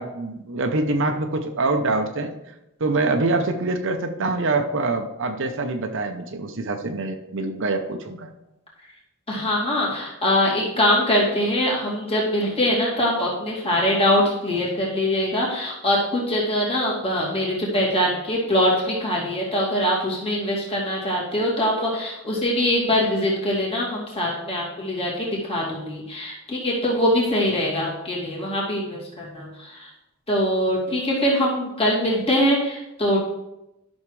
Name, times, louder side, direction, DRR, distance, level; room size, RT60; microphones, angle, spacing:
voice 1, 0.0-2.3 2.8-8.3, right 2 dB, 60° right, 6 dB, 0.8 m, -25 dB
voice 2, 9.3-29.9 30.3-33.2, left 1 dB, 25° left, -5 dB, 2.5 m, -23 dB
12.0 x 6.4 x 3.2 m, 0.92 s
head